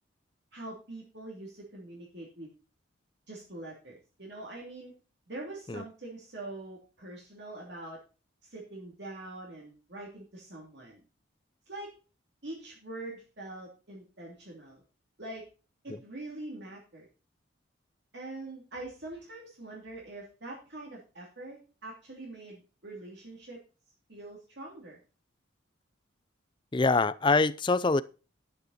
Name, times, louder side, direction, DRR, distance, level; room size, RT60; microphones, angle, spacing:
voice 1, 0.5-2.5 3.3-4.9 5.3-8.0 8.4-11.0 11.7-11.9 12.4-14.8 15.2-15.5 15.8-17.1 18.1-23.6 24.1-25.0, right 2 dB, 55° right, 2.9 m, -44 dB
voice 2, 26.7-28.0, left 3 dB, 25° left, 0.4 m, -25 dB
11.0 x 9.3 x 4.2 m
head